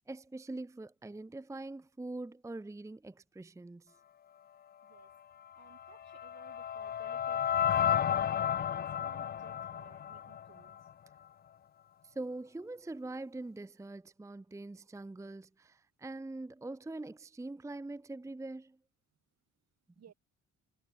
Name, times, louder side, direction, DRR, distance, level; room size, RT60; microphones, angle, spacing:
voice 1, 0.1-4.0 12.0-18.8, right 2 dB, 10° right, 0.7 m, -43 dB
voice 2, 4.8-5.1 5.6-8.3 8.6-10.7 20.0-20.1, right 9 dB, 60° right, 4.9 m, -59 dB
sound 1, 5.7-10.9, left 9 dB, 35° left, 0.4 m, -32 dB
cardioid pair, 90°, 30 cm